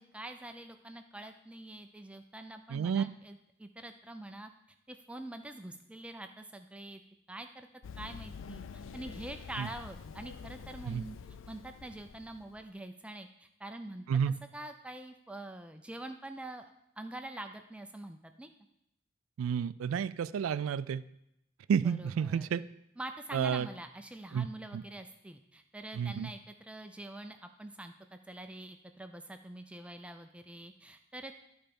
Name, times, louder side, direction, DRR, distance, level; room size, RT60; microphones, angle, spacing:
voice 1, 0.0-4.5 4.9-7.0 7.3-7.7 8.0-11.2 11.5-14.1 14.5-18.5 21.8-22.5 23.0-31.4, right 1 dB, 5° right, 6 dB, 0.3 m, -45 dB
voice 2, 2.7-3.0 9.6-9.7 10.8-11.0 14.1-14.4 19.4-21.0 21.7-22.6 23.3-23.7 24.3-24.5 24.7-24.8 26.0-26.3, right 7 dB, 90° right, 17 dB, 0.3 m, -30 dB
Run, 7.8-12.6, left 6 dB, 75° left, 0.4 m, -47 dB
11.5 x 4.4 x 5.2 m, 0.81 s
head